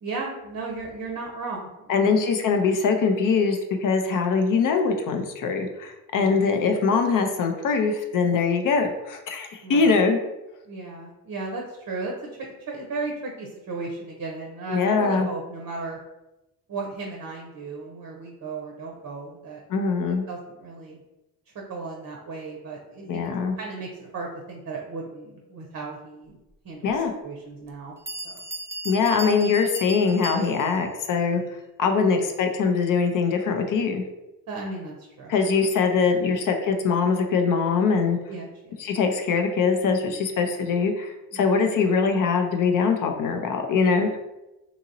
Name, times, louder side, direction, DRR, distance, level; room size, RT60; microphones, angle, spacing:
voice 1, 0.0-2.2 6.1-6.5 9.6-9.9 10.7-12.1 12.4-16.0 16.7-19.6 20.1-21.0 21.7-26.4 26.6-28.0 28.2-28.4 31.9-32.3 34.5-35.3 35.9-36.4 38.2-38.7 41.3-41.6, right 3 dB, 40° right, 0 dB, 0.7 m, -35 dB
voice 2, 1.9-10.2 14.7-15.3 19.7-20.2 23.1-23.6 26.8-27.1 28.8-31.4 31.8-34.0 35.3-38.2 38.8-44.1, left 5 dB, 50° left, 5 dB, 0.6 m, -22 dB
Bell, 27.7-27.8 28.1-30.9, right 2 dB, 5° right, 0.3 m, -36 dB
2.9 x 2.7 x 2.6 m, 0.97 s
supercardioid pair, 60°, 43 cm